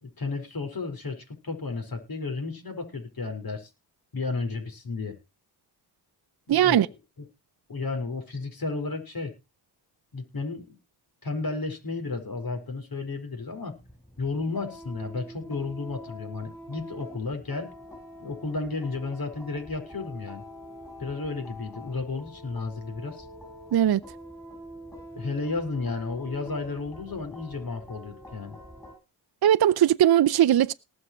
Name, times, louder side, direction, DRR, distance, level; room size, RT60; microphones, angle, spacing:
voice 1, 0.0-3.7 4.1-5.2 6.5-7.2 7.7-9.3 10.1-10.8 11.2-13.8 14.2-17.7 18.2-20.4 21.0-23.2 25.1-28.6, left 3 dB, 55° left, 4.9 m, -33 dB
voice 2, 6.5-6.9 23.7-24.0 29.4-30.7, right 11 dB, 55° right, 0.6 m, -19 dB
sound 1, 13.7-29.0, equal, 5° left, 7.4 m, -45 dB
19.0 x 6.5 x 4.4 m
cardioid pair, 60°, 44 cm